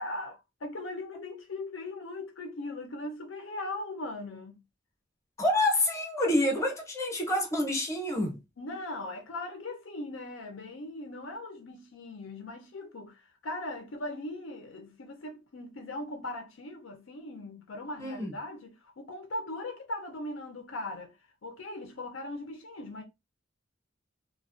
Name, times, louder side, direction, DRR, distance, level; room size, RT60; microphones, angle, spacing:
voice 1, 0.0-4.6 8.6-23.0, left 2 dB, 85° left, 0.5 m, -39 dB
voice 2, 5.4-8.4 18.0-18.3, left 1 dB, 15° left, 0.6 m, -27 dB
2.4 x 2.1 x 2.4 m
head